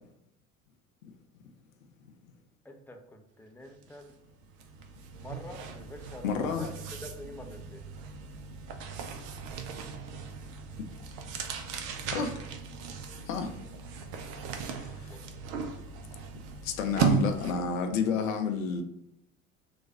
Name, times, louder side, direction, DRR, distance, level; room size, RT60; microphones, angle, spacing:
voice 1, 2.6-4.1 5.1-7.8 15.1-15.3, left 1 dB, 5° left, 3 dB, 0.4 m, -46 dB
sound 1, 3.8-4.0 4.3-17.8, right 6 dB, 55° right, 0.6 m, -36 dB
voice 2, 6.2-6.7 12.1-12.4 13.3-13.6 14.8-15.2 16.6-18.8, left 5 dB, 80° left, 6 dB, 0.6 m, -30 dB
3.2 x 2.3 x 4.1 m, 0.86 s
figure-of-eight pair, 60°, 40 cm